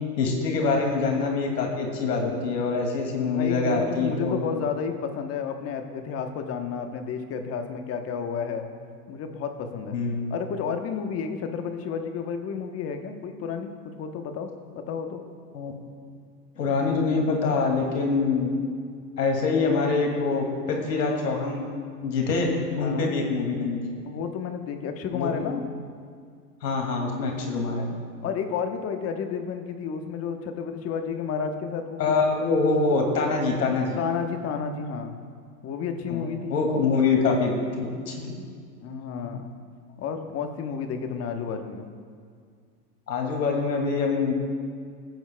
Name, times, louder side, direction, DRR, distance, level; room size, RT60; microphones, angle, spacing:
voice 1, 0.2-4.4 9.9-10.2 15.5-15.7 16.6-18.5 19.2-21.6 22.0-22.5 22.8-23.8 25.1-25.4 26.6-27.9 32.0-34.0 36.1-38.3 43.1-44.3, left 4 dB, 85° left, 1 dB, 2.4 m, -25 dB
voice 2, 3.2-8.6 9.1-10.0 10.3-15.2 22.7-23.1 24.1-25.6 28.2-32.1 34.0-35.2 35.6-36.6 38.8-39.5 40.0-41.9, left 6 dB, 30° left, 6 dB, 1.0 m, -31 dB
18.0 x 9.2 x 2.3 m, 2.1 s
hypercardioid pair, 115°, 48 cm